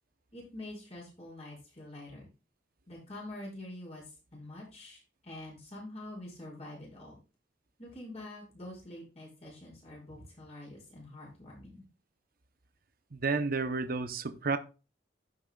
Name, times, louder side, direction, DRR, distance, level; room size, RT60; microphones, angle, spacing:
voice 1, 0.3-2.3 2.9-7.2 7.8-11.9, left 1 dB, 35° left, 5.9 m, -46 dB
voice 2, 13.1-14.6, right 4 dB, 55° right, 0.8 m, -31 dB
15.5 x 6.3 x 2.3 m
head